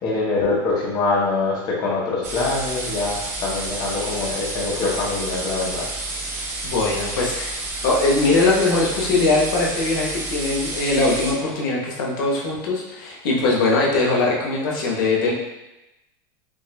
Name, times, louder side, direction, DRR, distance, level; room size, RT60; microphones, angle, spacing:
voice 1, 0.0-5.9, left 3 dB, 35° left, -4 dB, 0.9 m, -24 dB
sound 1, 2.2-11.3, right 2 dB, 25° right, 0.8 m, -30 dB
voice 2, 6.6-15.3, left 3 dB, 75° left, -3 dB, 1.0 m, -21 dB
6.1 x 2.5 x 2.2 m, 0.97 s
supercardioid pair, 150°, 11 cm